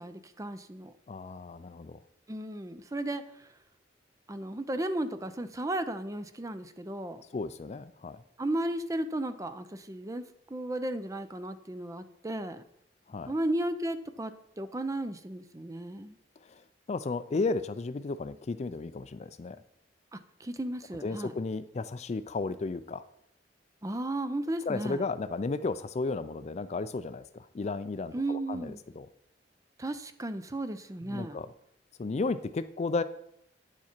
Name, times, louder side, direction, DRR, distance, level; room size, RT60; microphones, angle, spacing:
voice 1, 0.0-0.9 2.3-3.5 4.3-7.2 8.4-12.6 13.3-16.2 20.1-21.3 23.8-25.0 28.1-28.8 29.8-31.4, right 1 dB, 20° right, 11 dB, 0.6 m, -34 dB
voice 2, 1.1-2.0 7.3-8.2 13.1-13.3 16.5-16.6 16.9-19.6 21.0-23.0 24.7-29.1 31.1-31.5 32.0-33.0, left 3 dB, 40° left, 13 dB, 0.4 m, -33 dB
9.5 x 7.3 x 4.4 m, 0.76 s
head